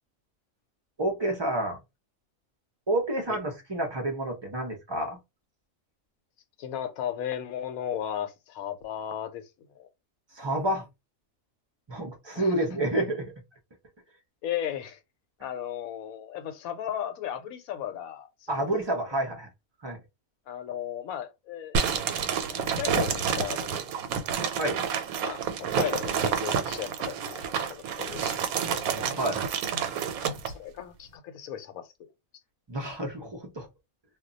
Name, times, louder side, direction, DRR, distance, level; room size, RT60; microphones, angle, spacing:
voice 1, 1.0-1.8 2.9-5.2 10.3-10.9 11.9-13.3 18.5-19.5 19.8-20.0 24.5-24.8 29.1-29.5 32.7-33.7, right 1 dB, 35° right, 0.4 m, -29 dB
voice 2, 6.6-9.4 9.7-9.9 12.3-12.5 14.4-15.0 15.4-18.7 20.5-21.9 22.5-23.7 25.2-28.4 28.7-29.1 30.5-31.9, left 10 dB, 85° left, 1.0 m, -35 dB
sound 1, 21.7-30.5, right 7 dB, 90° right, 1.0 m, -29 dB
2.3 x 2.2 x 3.8 m
omnidirectional pair, 1.5 m